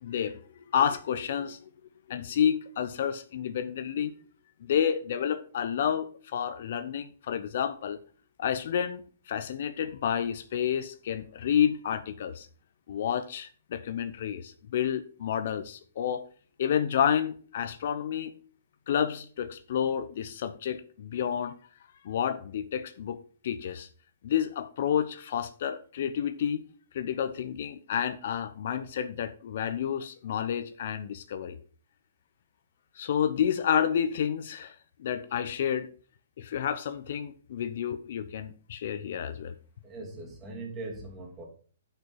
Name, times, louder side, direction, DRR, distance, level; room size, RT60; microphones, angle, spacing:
voice 1, 0.0-1.6 2.1-4.1 4.6-8.0 8.4-9.0 9.3-12.5 12.9-16.2 16.6-18.3 18.9-21.6 22.0-23.2 23.4-23.9 24.2-26.6 26.9-31.6 33.0-35.9 36.4-39.5, left 8 dB, 60° left, 0.7 m, -30 dB
voice 2, 39.8-41.5, right 2 dB, 20° right, 2.8 m, -40 dB
8.7 x 5.7 x 4.2 m
hypercardioid pair, 140°, 0 cm